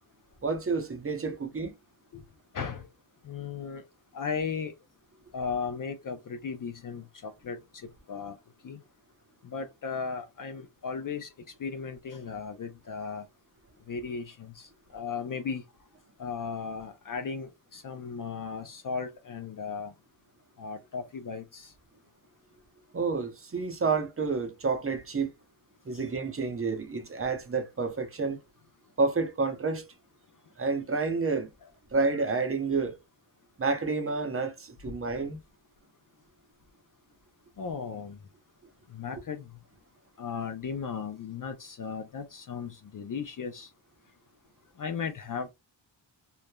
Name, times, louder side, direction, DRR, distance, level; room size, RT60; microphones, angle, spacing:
voice 1, 0.4-1.7 22.9-25.3 25.9-28.4 29.0-29.9 30.6-31.5 31.9-32.9 33.6-35.4, right 4 dB, 30° right, 0.7 m, -29 dB
voice 2, 2.5-2.9 3.2-3.8 4.1-4.7 5.3-8.4 8.6-8.8 9.4-11.3 11.6-13.3 13.9-15.6 16.2-19.9 20.6-21.7 25.9-26.1 37.6-38.2 38.9-39.5 40.2-43.7 44.8-45.5, left 5 dB, 45° left, 0.5 m, -36 dB
3.1 x 2.1 x 2.2 m
cardioid pair, 65°, 46 cm